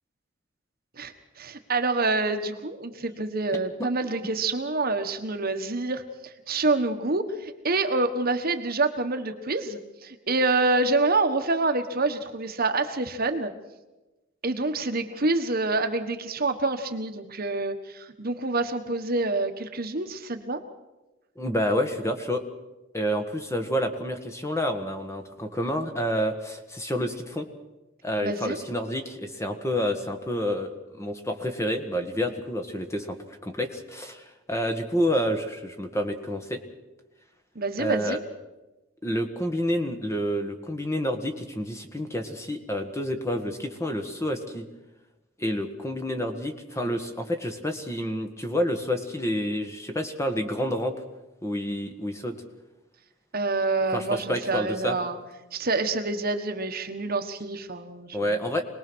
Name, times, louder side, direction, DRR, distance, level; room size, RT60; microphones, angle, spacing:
voice 1, 1.0-13.5 14.4-20.6 28.2-28.6 37.5-38.2 53.3-55.2 55.5-58.4, right 3 dB, 45° right, 6 dB, 1.4 m, -27 dB
voice 2, 21.4-22.4 22.9-27.5 28.0-30.7 31.0-36.6 37.8-38.2 39.0-44.7 45.4-50.9 51.4-52.4 53.9-55.0 58.1-58.6, equal, 15° left, 6 dB, 1.6 m, -29 dB
25.5 x 20.0 x 6.3 m, 1.1 s
head